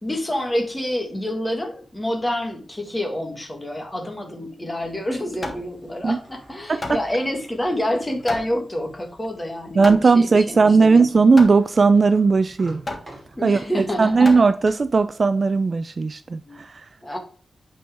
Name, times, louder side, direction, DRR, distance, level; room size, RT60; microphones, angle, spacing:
voice 1, 0.0-9.9 10.1-11.2 13.4-14.3 16.5-16.6 17.0-17.2, left 1 dB, 15° left, 1.6 m, -27 dB
Hammer, 4.8-15.0, left 2 dB, 30° left, 1.4 m, -36 dB
Sliding door, 5.8-8.4 9.0-9.1 10.4-10.5 10.6-13.8 14.3-14.7, right 2 dB, 20° right, 2.8 m, -48 dB
voice 2, 9.8-12.8 13.4-13.6 14.0-16.9, right 4 dB, 40° right, 0.3 m, -17 dB
8.6 x 4.6 x 3.4 m
wide cardioid pair, 155°, 0 cm